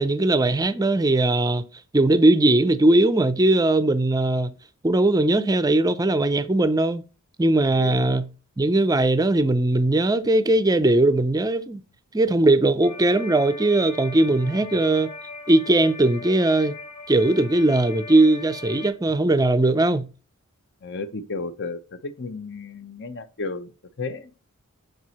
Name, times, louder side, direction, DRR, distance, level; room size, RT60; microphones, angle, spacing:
voice 1, 0.0-1.6 1.9-4.5 4.8-7.0 7.4-8.3 8.6-11.8 12.1-15.1 15.5-16.7 17.1-20.1, right 2 dB, 15° right, 0.5 m, -19 dB
voice 2, 7.7-8.0 20.8-23.7 24.0-24.3, left 3 dB, 55° left, 0.8 m, -33 dB
sound 1, 12.8-18.9, left 3 dB, 35° left, 1.2 m, -40 dB
6.6 x 4.7 x 4.1 m
head